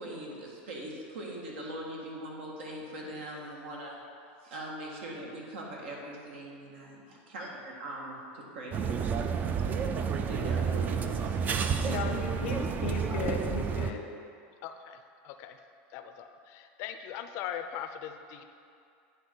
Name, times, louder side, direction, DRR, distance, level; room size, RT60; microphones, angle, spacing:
voice 1, 0.0-4.0 4.4-7.0 7.3-8.7 9.0-9.1 9.5-9.9 10.3-11.8, right 1 dB, 85° right, -2 dB, 1.5 m, -41 dB
sound 1, 8.7-13.9, right 6 dB, 30° right, 0.4 m, -30 dB
voice 2, 11.8-14.0, left 5 dB, 85° left, 4 dB, 0.8 m, -35 dB
voice 3, 14.6-15.0 15.2-15.6 15.9-18.4, left 9 dB, 55° left, 7 dB, 0.5 m, -40 dB
9.6 x 3.4 x 4.4 m, 2.4 s
supercardioid pair, 120°, 6 cm